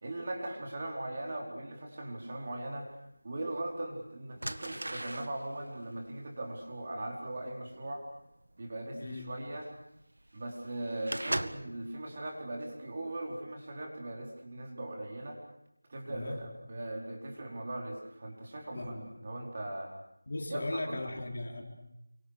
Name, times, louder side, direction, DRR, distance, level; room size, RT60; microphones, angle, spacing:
voice 1, 0.0-2.9 3.2-8.0 8.6-9.7 10.3-15.4 15.9-19.9 20.5-21.0, right 1 dB, 25° right, 1 dB, 4.4 m, -39 dB
sound 1, 2.9-3.0 3.7-3.9 4.4-11.8 12.3-12.7 13.1-13.3, right 1 dB, 80° right, 1.9 m, -40 dB
voice 2, 8.9-9.3 16.1-16.4 18.7-19.1 20.3-21.6, left 2 dB, 35° left, 3 dB, 4.3 m, -37 dB
30.0 x 26.0 x 6.6 m, 0.84 s
figure-of-eight pair, 180°, 0 cm